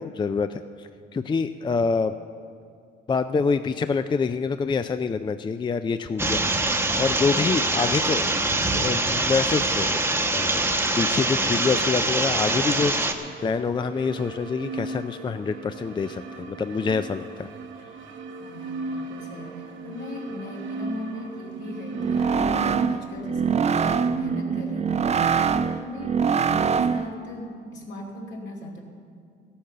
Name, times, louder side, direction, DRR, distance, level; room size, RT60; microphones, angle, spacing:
voice 1, 0.0-2.2 3.1-8.3 8.7-10.0 10.3-10.6 10.9-17.5 25.5-25.7, left 5 dB, 25° left, 10 dB, 0.4 m, -26 dB
sound 1, 6.2-13.1, right 2 dB, 10° right, 1.0 m, -24 dB
sound 2, 13.2-22.9, right 2 dB, 70° right, 1.1 m, -37 dB
voice 2, 18.4-25.3 25.7-28.8, left 1 dB, 65° left, 0 dB, 2.7 m, -38 dB
sound 3, 21.9-27.2, right 6 dB, 35° right, 0.5 m, -24 dB
14.5 x 8.6 x 6.7 m, 2.2 s
cardioid pair, 90°, 20 cm